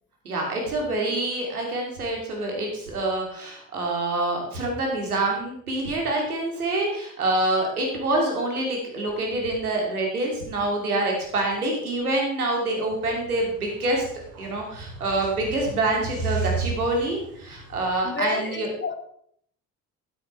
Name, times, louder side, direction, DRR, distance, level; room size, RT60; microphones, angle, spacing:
voice 1, 0.2-14.0 14.4-18.7, right 2 dB, 85° right, 0 dB, 2.9 m, -26 dB
sound 1, 12.9-18.0, right 4 dB, 70° right, 3.9 m, -34 dB
voice 2, 18.0-19.0, left 4 dB, 25° left, 8 dB, 1.7 m, -30 dB
12.5 x 9.8 x 4.5 m, 0.66 s
figure-of-eight pair, 50°, 43 cm